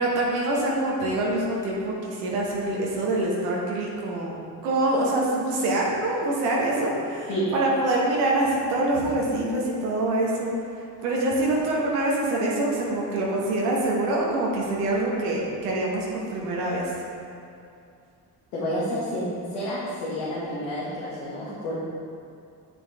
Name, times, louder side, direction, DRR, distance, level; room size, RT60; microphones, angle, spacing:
voice 1, 0.0-4.3 4.6-10.5 11.0-16.9, right 2 dB, 85° right, -3 dB, 1.4 m, -25 dB
voice 2, 18.5-21.7, equal, 85° left, -10 dB, 1.6 m, -30 dB
8.1 x 5.7 x 3.4 m, 2.5 s
hypercardioid pair, 55°, 46 cm